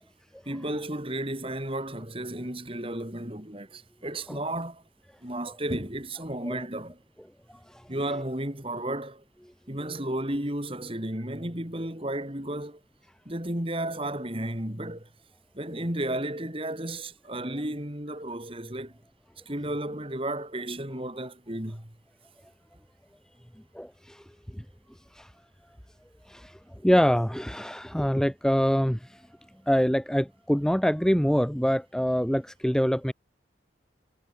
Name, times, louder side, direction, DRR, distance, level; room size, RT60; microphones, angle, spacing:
voice 1, 0.5-4.8 5.2-7.0 7.9-9.2 9.7-12.8 13.3-15.1 15.5-18.9 19.5-21.9, right 1 dB, 30° right, 3.6 m, -33 dB
voice 2, 23.7-24.2 24.5-24.6 25.1-25.3 26.3-29.2 29.7-33.1, equal, 5° left, 0.7 m, -25 dB
head